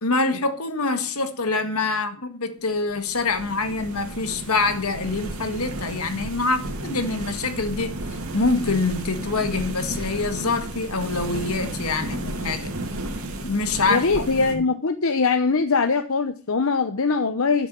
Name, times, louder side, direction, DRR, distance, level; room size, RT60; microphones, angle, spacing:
voice 1, 0.0-8.0 8.3-12.7 13.4-14.6, left 3 dB, 85° left, 1.8 m, -25 dB
sound 1, 2.8-14.5, right 1 dB, 75° right, 2.6 m, -33 dB
voice 2, 13.9-17.7, left 4 dB, 70° left, 0.8 m, -22 dB
12.0 x 7.0 x 6.9 m
head